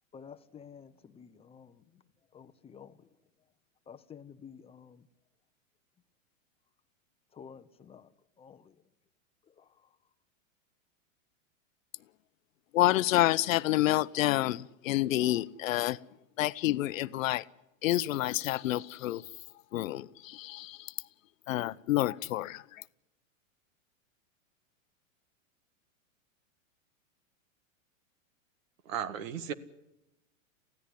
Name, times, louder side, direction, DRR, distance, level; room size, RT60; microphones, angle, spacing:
voice 1, 0.1-2.0 2.3-3.1 3.9-5.1 7.3-8.8 9.4-10.0, left 7 dB, 15° left, 0.8 m, -52 dB
voice 2, 12.7-16.0 16.4-17.5 17.8-19.2 19.7-20.9 21.5-22.8, left 15 dB, 75° left, 0.8 m, -28 dB
voice 3, 28.8-29.5, right 8 dB, 75° right, 1.8 m, -35 dB
23.5 x 16.0 x 9.8 m
hypercardioid pair, 135°, 40 cm